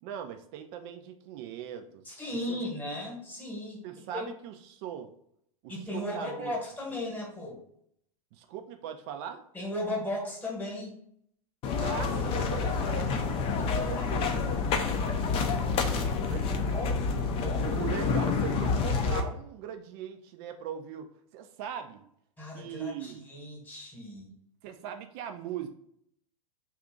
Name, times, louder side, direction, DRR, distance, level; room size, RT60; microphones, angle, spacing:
voice 1, 0.0-2.0 2.3-2.6 3.8-5.1 5.6-6.6 8.3-9.4 11.8-13.2 13.6-14.4 16.3-16.8 17.6-22.0 22.5-23.3 24.6-25.7, right 9 dB, 45° right, 7 dB, 0.4 m, -40 dB
voice 2, 2.0-3.8 4.1-4.3 5.7-7.6 9.5-10.9 14.0-14.1 16.7-17.0 17.3-17.6 22.4-24.3, left 1 dB, 10° left, -2 dB, 1.2 m, -36 dB
sound 1, 11.6-19.2, left 4 dB, 30° left, 0.5 m, -28 dB
2.8 x 2.4 x 3.7 m, 0.69 s
hypercardioid pair, 100°, 19 cm